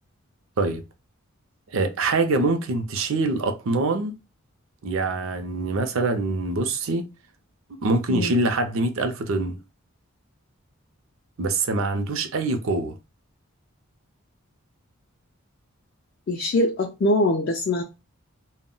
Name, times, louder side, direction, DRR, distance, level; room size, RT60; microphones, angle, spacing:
voice 1, 1.7-4.1 4.8-7.1 7.8-9.6 11.4-13.0, right 3 dB, 65° right, 0.5 m, -24 dB
voice 2, 16.3-17.8, left 1 dB, 45° left, 0.3 m, -23 dB
2.1 x 2.0 x 3.7 m
head